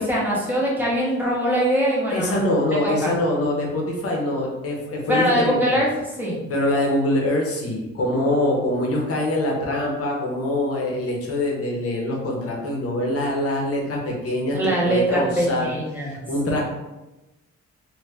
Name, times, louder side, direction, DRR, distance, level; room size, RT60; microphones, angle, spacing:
voice 1, 0.0-2.4 2.8-3.1 5.1-6.4 14.5-16.2, equal, 5° right, -5 dB, 0.9 m, -22 dB
voice 2, 2.1-5.6 6.5-16.6, left 1 dB, 50° left, -1 dB, 0.8 m, -24 dB
2.6 x 2.4 x 3.3 m, 1.0 s
cardioid pair, 135°, 29 cm